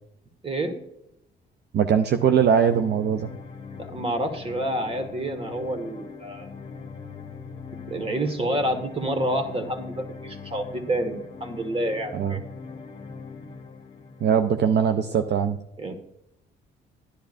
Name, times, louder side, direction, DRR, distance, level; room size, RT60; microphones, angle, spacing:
voice 1, 0.4-0.8 3.8-6.5 7.9-12.4 15.8-15.9, right 1 dB, 30° right, 7 dB, 1.6 m, -28 dB
voice 2, 1.7-3.3 12.1-12.4 14.2-15.6, right 7 dB, 60° right, 8 dB, 0.6 m, -21 dB
sound 1, 2.7-14.6, left 5 dB, 30° left, 1.8 m, -41 dB
11.5 x 10.5 x 2.5 m, 0.85 s
cardioid pair, 90°, 20 cm